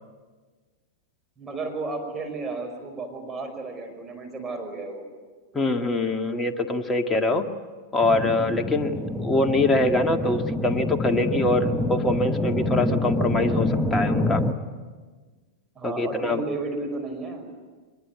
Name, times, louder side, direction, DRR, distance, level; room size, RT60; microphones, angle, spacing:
voice 1, 1.4-5.0 15.8-17.5, right 3 dB, 20° right, 3 dB, 5.4 m, -33 dB
voice 2, 5.5-7.5 7.9-14.4 15.8-16.4, left 2 dB, 15° left, 5 dB, 2.0 m, -24 dB
sound 1, 8.0-14.5, left 1 dB, ahead, 1.5 m, -26 dB
24.0 x 21.5 x 9.4 m, 1.4 s
hypercardioid pair, 95°, 0 cm